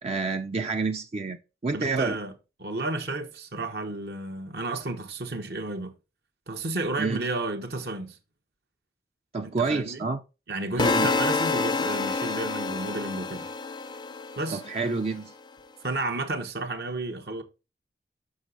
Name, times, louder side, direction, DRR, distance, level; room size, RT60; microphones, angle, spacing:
voice 1, 0.0-2.2 7.0-7.2 9.3-10.2 10.8-11.1 14.5-15.3, right 4 dB, 35° right, 0.5 m, -28 dB
voice 2, 1.7-2.3 2.6-5.9 6.5-8.2 9.6-10.1 10.5-13.5 14.4-14.6 15.8-17.4, right 2 dB, 65° right, 1.1 m, -32 dB
sound 1, 10.8-14.9, left 4 dB, 25° left, 0.5 m, -28 dB
6.4 x 6.0 x 3.9 m
head